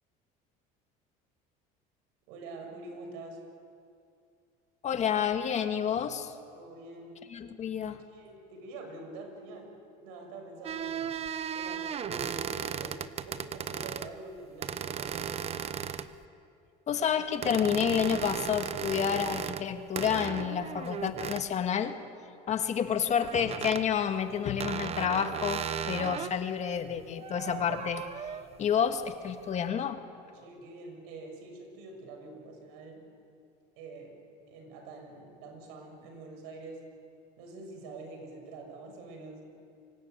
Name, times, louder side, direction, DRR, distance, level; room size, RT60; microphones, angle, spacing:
voice 1, 2.3-3.4 6.5-7.2 8.1-11.2 11.5-15.5 30.3-33.0 33.8-36.8 37.4-39.5, right 2 dB, 90° right, 4 dB, 6.4 m, -46 dB
voice 2, 4.8-6.3 7.3-8.0 16.9-22.0 22.5-28.3 28.6-30.0, left 8 dB, 40° left, 7 dB, 1.9 m, -29 dB
sound 1, 10.6-14.1 14.6-16.2 17.4-19.7 20.0-21.5 23.2-23.8 24.6-26.3 27.0-28.5, right 8 dB, 35° right, 1.0 m, -36 dB
25.5 x 22.5 x 9.2 m, 2.5 s
cardioid pair, 125°, 18 cm